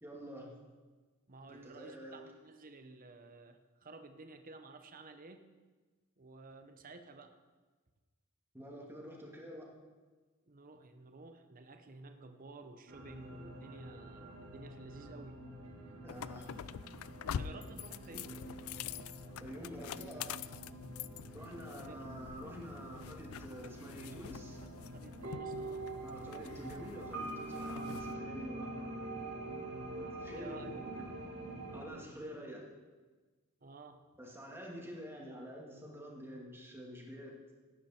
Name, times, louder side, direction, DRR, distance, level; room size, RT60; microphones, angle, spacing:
voice 1, 0.0-0.5 1.5-2.2 8.5-9.7 16.0-16.5 19.4-20.4 21.3-24.6 26.0-29.2 29.9-30.6 30.9-31.0 31.7-32.7 34.2-37.4, equal, 10° right, -2 dB, 2.4 m, -47 dB
voice 2, 1.3-5.5 6.2-7.4 10.5-15.4 17.2-18.4 21.6-22.1 24.6-25.9 30.4-30.8 33.6-34.1, right 3 dB, 40° right, 7 dB, 0.9 m, -53 dB
sound 1, 12.9-31.8, right 2 dB, 85° right, 3.9 m, -46 dB
sound 2, 16.1-28.1, left 9 dB, 75° left, 0.4 m, -46 dB
17.0 x 9.7 x 4.5 m, 1.3 s
head